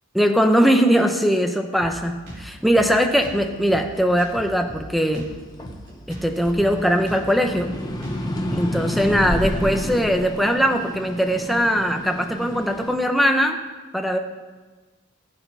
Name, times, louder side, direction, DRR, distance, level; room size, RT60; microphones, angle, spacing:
voice 1, 0.1-5.3 6.1-7.7 8.5-13.6 13.9-14.2, equal, ahead, 5 dB, 0.8 m, -20 dB
Drum kit, 1.8-9.5, right 1 dB, 55° right, 4.7 m, -39 dB
sound 1, 3.3-5.9 6.3-12.9, equal, 20° left, 1.1 m, -30 dB
19.0 x 8.7 x 3.5 m, 1.3 s
head